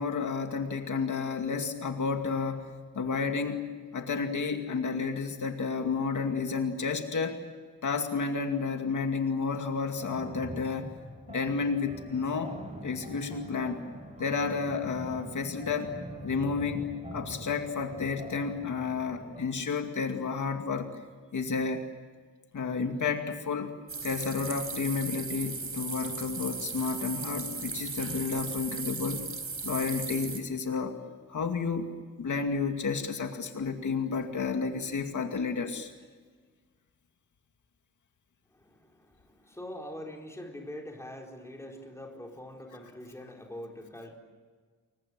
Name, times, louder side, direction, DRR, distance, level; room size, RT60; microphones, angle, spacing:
voice 1, 0.0-3.7 3.9-7.4 7.8-10.9 11.3-12.5 12.8-13.8 14.2-16.0 16.2-20.9 21.3-21.9 22.5-23.7 24.0-29.2 29.6-30.9 31.3-31.9 32.2-35.9, left 5 dB, 70° left, 5 dB, 2.4 m, -31 dB
sound 1, 10.0-19.5, right 1 dB, 20° right, 3.5 m, -44 dB
sound 2, 23.9-30.4, right 4 dB, 45° right, 4.1 m, -37 dB
voice 2, 38.5-44.1, left 1 dB, 10° left, 1 dB, 4.3 m, -44 dB
30.0 x 23.5 x 7.7 m, 1.5 s
wide cardioid pair, 180°, 31 cm